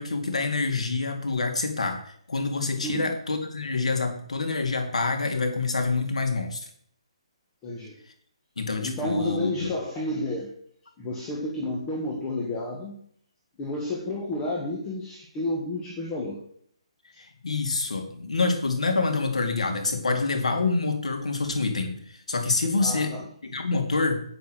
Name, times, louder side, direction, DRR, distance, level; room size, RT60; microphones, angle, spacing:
voice 1, 0.0-6.7 8.6-9.7 17.2-23.1 23.4-24.2, left 3 dB, 85° left, 6 dB, 2.3 m, -27 dB
voice 2, 7.6-8.0 8.8-10.5 11.0-13.0 13.6-16.4 22.8-23.2, left 1 dB, 15° left, -1 dB, 1.3 m, -31 dB
8.4 x 7.0 x 6.4 m, 0.64 s
hypercardioid pair, 165°, 3 cm